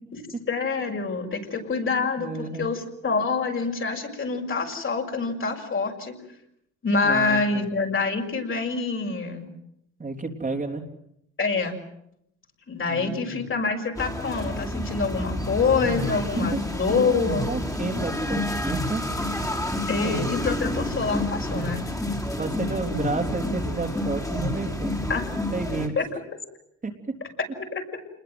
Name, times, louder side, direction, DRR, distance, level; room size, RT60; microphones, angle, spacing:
voice 1, 0.5-6.1 6.8-9.5 11.4-11.7 12.7-17.5 19.9-21.8 25.1-25.2 26.0-26.1, left 4 dB, 45° left, 2 dB, 6.3 m, -26 dB
voice 2, 2.2-2.7 7.0-7.7 10.0-10.8 12.9-13.4 16.4-16.7 16.9-19.0 20.0-20.3 22.4-25.0 25.5-26.0 26.8-26.9, right 3 dB, 25° right, 2 dB, 3.7 m, -31 dB
sound 1, 14.0-25.9, left 1 dB, 10° left, 4.1 m, -29 dB
28.0 x 21.5 x 7.9 m, 0.76 s
cardioid pair, 90°, 30 cm